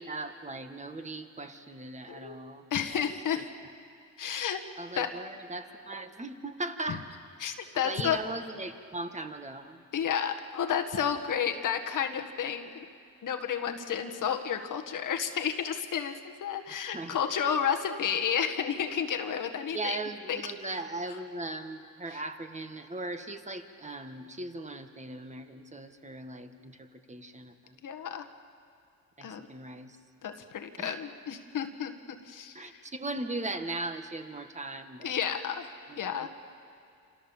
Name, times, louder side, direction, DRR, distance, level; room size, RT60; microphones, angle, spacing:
voice 1, 0.0-2.6 2.9-3.4 4.8-7.0 7.8-9.8 16.7-17.2 19.7-27.8 29.2-30.0 30.8-31.0 32.5-35.2 35.9-36.3, right 2 dB, 20° right, 7 dB, 1.8 m, -39 dB
voice 2, 2.1-2.4 2.7-3.5 4.2-4.6 4.9-5.1 6.9-7.0 7.4-8.2 9.9-12.9 13.2-20.0 20.3-20.4 27.8-28.3 29.2-29.5 30.2-32.8 35.0-36.3, left 8 dB, 60° left, 6 dB, 1.7 m, -31 dB
28.5 x 27.0 x 7.3 m, 2.4 s
cardioid pair, 100°, 35 cm